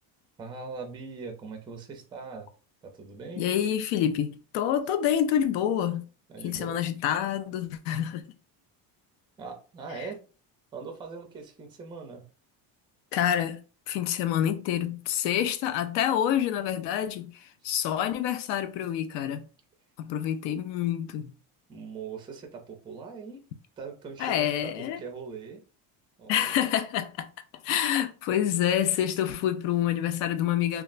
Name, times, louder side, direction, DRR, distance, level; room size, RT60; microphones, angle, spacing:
voice 1, 0.4-2.5 2.8-3.5 6.3-6.8 9.4-10.2 10.7-12.2 21.7-23.4 23.8-25.6 26.2-26.7, right 5 dB, 10° right, 0.3 m, -41 dB
voice 2, 3.4-6.1 6.4-8.3 10.0-10.1 13.1-19.5 20.0-21.3 24.2-25.0 26.3-27.3 27.6-30.8, left 10 dB, 90° left, 0.5 m, -27 dB
3.1 x 2.3 x 2.4 m
cardioid pair, 160°, 42 cm